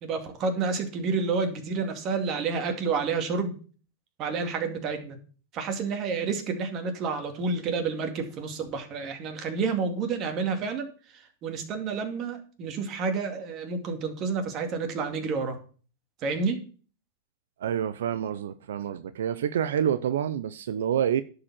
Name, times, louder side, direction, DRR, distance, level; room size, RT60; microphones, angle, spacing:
voice 1, 0.0-3.5 4.2-5.2 5.5-10.9 11.4-15.6 16.2-16.6, right 4 dB, 35° right, 2.2 m, -29 dB
voice 2, 17.6-21.2, right 9 dB, 85° right, 0.7 m, -27 dB
11.0 x 5.0 x 7.4 m
supercardioid pair, 150°, 0 cm